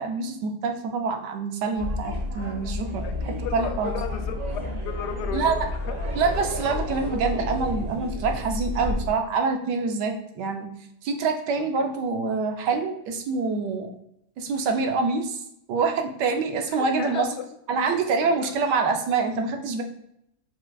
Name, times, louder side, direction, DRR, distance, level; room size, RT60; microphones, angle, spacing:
voice 1, 0.0-3.9 5.3-5.6 6.2-10.7 11.0-13.9 14.4-15.4 15.7-17.3 17.7-19.8, right 4 dB, 90° right, 4 dB, 1.3 m, -26 dB
sound 1, 1.8-9.1, left 1 dB, 60° right, 2.0 m, -31 dB
voice 2, 3.0-6.0 11.5-11.9 16.7-17.4 18.2-18.5, left 8 dB, 80° left, 7 dB, 1.1 m, -35 dB
4.4 x 4.0 x 2.3 m, 0.77 s
omnidirectional pair, 1.8 m